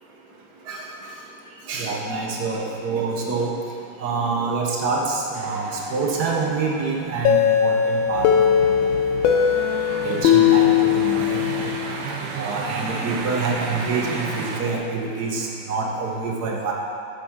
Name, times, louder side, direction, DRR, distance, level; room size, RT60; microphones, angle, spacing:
voice 1, 1.7-3.5 4.0-8.4 9.2-9.4 10.0-11.7 12.3-16.7, right 4 dB, 55° right, -1 dB, 1.4 m, -26 dB
sound 1, 5.3-14.6, right 3 dB, 90° right, 1.8 m, -36 dB
sound 2, 7.2-11.9, left 9 dB, 75° left, 1.2 m, -19 dB
sound 3, 8.0-14.8, right 6 dB, 75° right, 1.4 m, -36 dB
8.9 x 7.4 x 3.7 m, 2.4 s
omnidirectional pair, 2.4 m